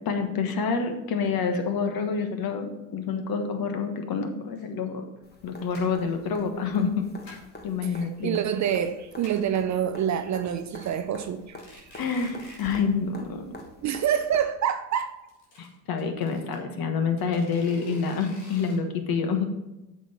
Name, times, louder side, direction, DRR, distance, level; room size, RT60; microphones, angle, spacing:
voice 1, 0.0-5.0 5.4-7.4 7.6-8.4 12.0-13.4 15.6-19.5, left 5 dB, 45° left, 6 dB, 1.3 m, -27 dB
sound 1, 4.6-4.7 5.2-5.4 5.7-6.1 6.8-7.6 8.0-8.5 8.8-8.9 9.1-9.6 10.0-10.1 10.4-10.9 11.4-12.9 13.2-13.3 13.6-13.7 13.9-14.0 15.1-16.6 17.2-18.8, left 2 dB, 90° left, 2.3 m, -49 dB
sound 2, 5.2-14.4 16.4-16.5, left 2 dB, 20° left, 1.3 m, -46 dB
voice 2, 7.8-12.0 13.8-15.1, right 9 dB, 35° right, 10 dB, 0.6 m, -27 dB
8.2 x 5.7 x 4.3 m, 0.97 s
hypercardioid pair, 65°, 49 cm